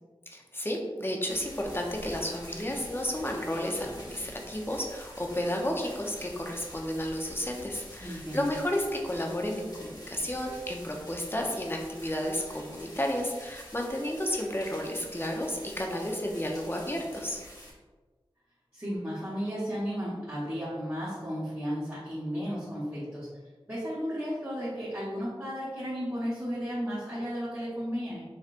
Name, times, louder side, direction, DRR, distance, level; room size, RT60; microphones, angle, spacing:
voice 1, 0.3-17.4, left 1 dB, 25° left, 1 dB, 0.7 m, -32 dB
sound 1, 1.3-17.7, equal, 45° left, 1.2 m, -48 dB
voice 2, 8.0-8.5 18.7-23.3 23.7-28.2, equal, 25° right, -11 dB, 1.3 m, -34 dB
5.2 x 3.2 x 2.5 m, 1.3 s
wide cardioid pair, 40°, 9 cm